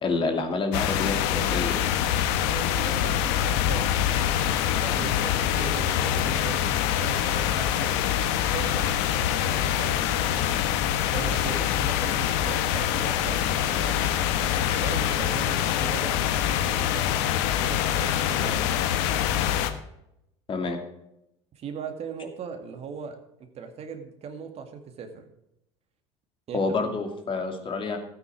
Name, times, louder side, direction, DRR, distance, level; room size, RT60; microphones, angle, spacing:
voice 1, 0.0-1.8 20.5-20.8 26.5-28.0, left 3 dB, 35° left, 5 dB, 2.6 m, -28 dB
sound 1, 0.7-19.7, left 10 dB, 65° left, 1.2 m, -25 dB
voice 2, 2.4-10.6 11.1-17.1 17.6-19.0 21.6-25.3 26.5-26.6, right 6 dB, 45° right, 6 dB, 2.0 m, -39 dB
13.0 x 9.1 x 4.8 m, 0.82 s
hypercardioid pair, 80°, 15 cm